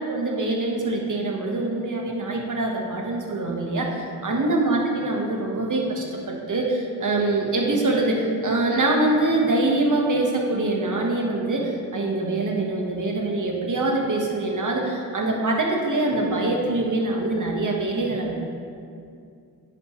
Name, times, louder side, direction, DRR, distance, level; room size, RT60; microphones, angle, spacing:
voice 1, 0.1-18.4, right 2 dB, 50° right, -1 dB, 1.4 m, -24 dB
10.0 x 5.6 x 3.2 m, 2.4 s
cardioid pair, 60°, 40 cm